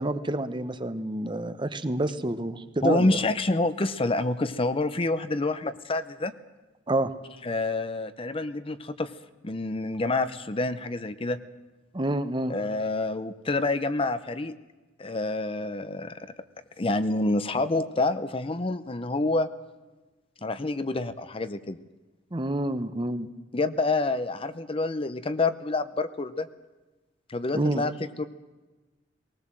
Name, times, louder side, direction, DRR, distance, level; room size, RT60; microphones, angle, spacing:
voice 1, 0.0-3.2 6.9-7.1 11.9-12.5 22.3-23.3 27.5-27.9, right 1 dB, 25° right, 11 dB, 0.9 m, -28 dB
voice 2, 2.8-6.3 7.4-9.1 9.4-11.4 12.5-14.5 15.0-16.3 16.8-19.5 20.4-21.8 23.5-26.5 27.3-27.9 28.2-28.3, left 2 dB, 30° left, 12 dB, 0.7 m, -27 dB
19.5 x 18.5 x 7.6 m, 1.2 s
head